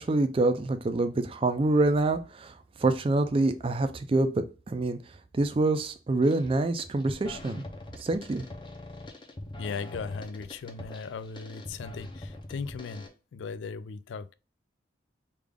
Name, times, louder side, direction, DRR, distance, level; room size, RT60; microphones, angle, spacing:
voice 1, 0.0-2.5 2.8-5.0 5.3-7.6 8.0-8.4, right 2 dB, 30° right, 0.4 m, -26 dB
sound 1, 6.2-6.5 6.8-13.1, left 1 dB, 25° left, 0.5 m, -43 dB
voice 2, 9.6-13.0 13.3-14.3, left 5 dB, 85° left, 0.3 m, -37 dB
3.4 x 2.3 x 3.5 m
head